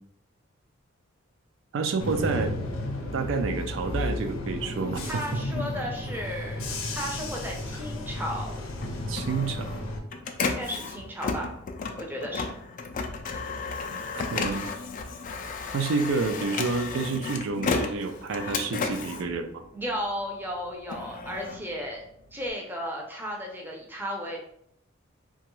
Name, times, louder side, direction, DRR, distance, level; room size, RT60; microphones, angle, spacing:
voice 1, 1.7-2.6 3.1-5.4 9.1-9.8 13.9-14.7 15.7-19.6, right 4 dB, 65° right, 7 dB, 0.4 m, -29 dB
Bus / Engine, 2.0-10.0, left 1 dB, 90° left, 0.6 m, -33 dB
voice 2, 5.1-8.5 10.4-11.5 12.0-12.5 19.7-22.0 22.3-24.4, equal, 10° right, 0 dB, 0.5 m, -34 dB
Printer, 8.8-20.2 20.6-22.5, left 4 dB, 40° left, 0.3 m, -33 dB
2.8 x 2.3 x 3.0 m, 0.72 s
head